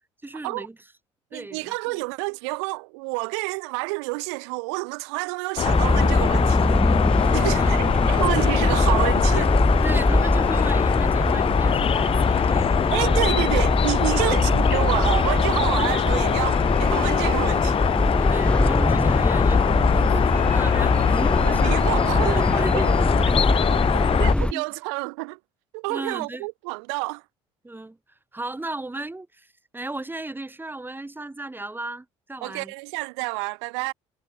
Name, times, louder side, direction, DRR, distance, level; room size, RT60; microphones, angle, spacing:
voice 1, 0.2-0.8 1.3-2.0 7.2-8.2 9.3-9.5 9.8-13.2 14.1-14.4 18.0-19.6 19.9-21.8 22.2-23.3 24.4-24.7 25.9-26.5 27.6-28.0 28.3-29.5 29.7-32.7, right 2 dB, 15° right, 4.5 m, -35 dB
voice 2, 1.3-6.8 7.3-9.5 12.9-17.9 21.4-22.5 22.7-22.9 24.2-25.4 25.7-27.2 32.4-33.9, right 32 dB, 80° right, 1.0 m, -28 dB
sound 1, 5.6-24.3, left 8 dB, 45° left, 0.7 m, -23 dB
sound 2, 5.7-24.5, left 1 dB, 5° left, 0.8 m, -22 dB
hypercardioid pair, 60°, 14 cm